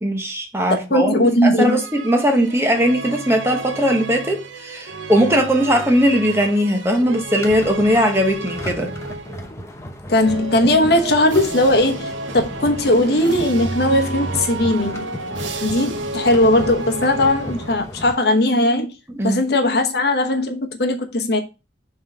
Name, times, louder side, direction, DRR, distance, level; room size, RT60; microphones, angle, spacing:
voice 1, 0.0-9.0 19.2-19.4, equal, 15° right, 1.0 m, -19 dB
voice 2, 0.9-1.8 10.1-15.1 15.6-18.9 19.2-21.4, left 1 dB, 55° left, 1.0 m, -18 dB
sound 1, 1.6-9.5 10.1-18.0, right 2 dB, 90° right, 0.8 m, -31 dB
sound 2, 6.8-18.1, equal, 15° left, 0.7 m, -35 dB
5.5 x 3.7 x 5.5 m
head